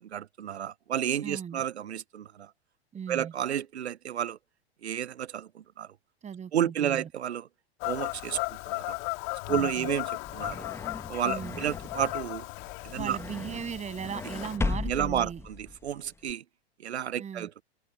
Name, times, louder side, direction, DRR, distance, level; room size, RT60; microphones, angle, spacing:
voice 1, 0.0-2.5 3.1-4.4 4.8-5.9 6.5-7.5 7.8-9.0 9.5-10.7 11.1-12.5 12.8-13.2 14.8-16.4 16.8-17.6, right 10 dB, 80° right, 0.8 m, -31 dB
voice 2, 1.2-1.6 2.9-3.3 6.2-7.1 9.5-9.9 11.2-11.6 13.0-15.4 17.2-17.5, right 7 dB, 20° right, 7.8 m, -38 dB
Fowl / Bird vocalization bird call bird song, 7.8-14.6, left 34 dB, 45° left, 2.6 m, -36 dB
sound 1, 10.0-16.3, left 3 dB, 10° left, 1.4 m, -37 dB
figure-of-eight pair, 100°, 33 cm